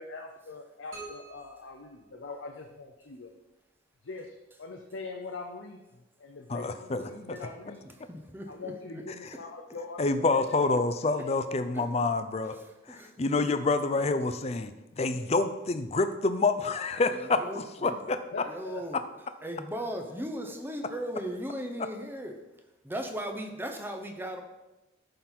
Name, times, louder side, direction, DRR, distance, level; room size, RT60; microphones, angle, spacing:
voice 1, 0.0-3.3 4.0-8.0 8.5-10.0 10.3-11.4 18.3-18.8 19.7-19.8 20.1-20.5, left 3 dB, 90° left, 2 dB, 0.7 m, -43 dB
sound 1, 0.9-2.8, right 3 dB, 80° right, 2.5 m, -48 dB
voice 2, 6.5-7.0 10.0-12.6 12.9-14.7 15.0-18.2, left 3 dB, 35° left, 10 dB, 0.5 m, -27 dB
voice 3, 8.1-9.0 11.7-11.8 12.5-13.4 17.1-18.0 18.5-19.0 19.4-22.4 22.8-24.4, equal, 10° right, 4 dB, 0.7 m, -37 dB
11.0 x 4.0 x 4.4 m, 1.0 s
head